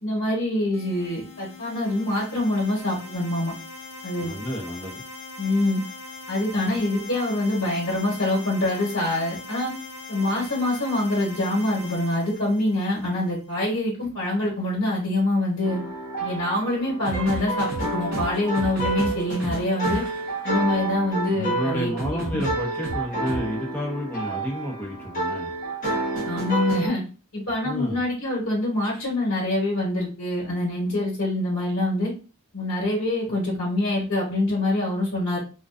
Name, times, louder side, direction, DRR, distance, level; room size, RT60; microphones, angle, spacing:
voice 1, 0.0-3.5 4.0-4.3 5.4-5.8 6.3-9.7 10.1-15.8 16.2-20.0 20.4-22.4 26.2-27.0 27.3-32.1 32.5-35.4, left 1 dB, 85° left, -3 dB, 1.0 m, -25 dB
sound 1, 0.7-13.4, left 3 dB, 65° left, 0.5 m, -41 dB
voice 2, 4.2-5.0 21.3-25.5 27.6-28.0, equal, 10° left, -4 dB, 0.8 m, -30 dB
sound 2, 15.6-26.9, right 2 dB, 40° left, 1.1 m, -30 dB
sound 3, 17.0-20.3 22.0-23.4 25.8-26.8 28.8-29.1, right 1 dB, 50° right, 0.8 m, -33 dB
2.4 x 2.2 x 2.4 m, 0.34 s
head